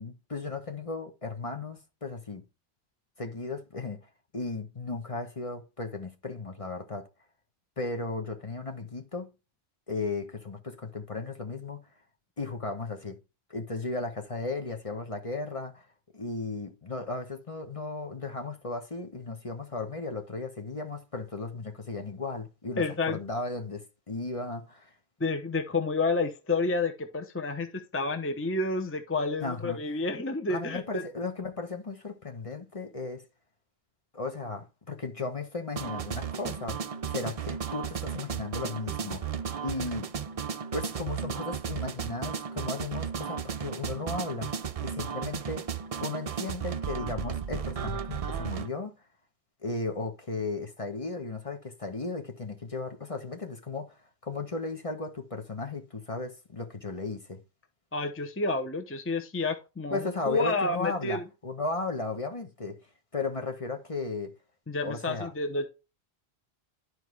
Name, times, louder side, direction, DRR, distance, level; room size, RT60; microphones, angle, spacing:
voice 1, 0.0-2.4 3.2-4.0 4.3-7.1 7.8-9.3 9.9-11.9 12.4-13.2 13.5-15.9 16.1-24.9 29.4-29.8 30.5-33.3 34.1-36.8 37.1-39.3 39.6-40.1 40.7-44.5 44.8-45.7 46.0-48.9 49.6-53.9 54.2-57.4 59.9-62.8 63.1-64.3 64.8-65.3, left 3 dB, 35° left, 1.1 m, -35 dB
voice 2, 22.8-23.2 25.2-31.0 57.9-61.2 64.7-65.7, left 3 dB, 15° left, 0.8 m, -30 dB
sound 1, 35.8-48.7, right 7 dB, 45° right, 0.5 m, -34 dB
11.5 x 4.7 x 3.2 m
omnidirectional pair, 1.1 m